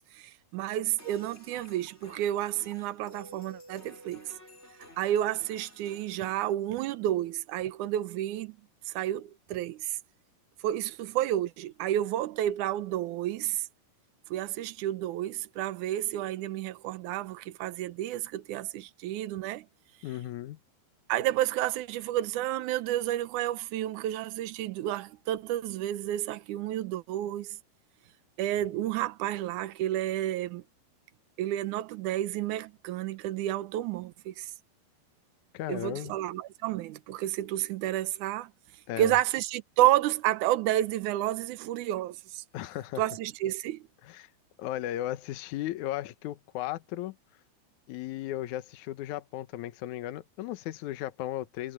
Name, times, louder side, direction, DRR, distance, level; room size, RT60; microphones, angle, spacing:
voice 1, 0.1-4.3 5.0-8.6 8.9-10.0 10.6-13.7 14.3-19.7 21.1-27.6 28.4-30.6 31.4-34.5 35.7-38.5 39.0-42.4 43.0-43.8, right 13 dB, 85° right, 1.7 m, -30 dB
sound 1, 1.0-6.5, equal, 15° left, 7.3 m, -52 dB
voice 2, 20.0-20.6 35.5-36.1 38.9-39.2 42.5-43.0 44.0-44.3 44.6-47.2 47.9-51.7, left 14 dB, 75° left, 1.8 m, -36 dB
omnidirectional pair, 4.8 m